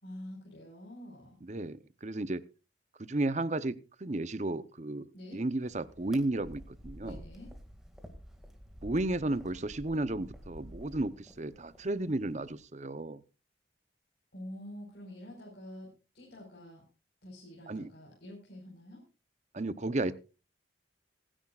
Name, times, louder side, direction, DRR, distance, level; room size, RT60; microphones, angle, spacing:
voice 1, 0.0-1.4 5.1-5.4 7.0-7.5 14.3-16.8 17.2-19.0, left 1 dB, 60° left, -2 dB, 4.7 m, -47 dB
voice 2, 1.4-2.4 3.0-7.2 8.8-13.2 17.7-17.9 19.5-20.1, right 2 dB, 40° right, 15 dB, 0.7 m, -33 dB
sound 1, 5.6-12.6, equal, 5° right, 2.0 m, -50 dB
26.5 x 10.0 x 2.4 m, 0.31 s
head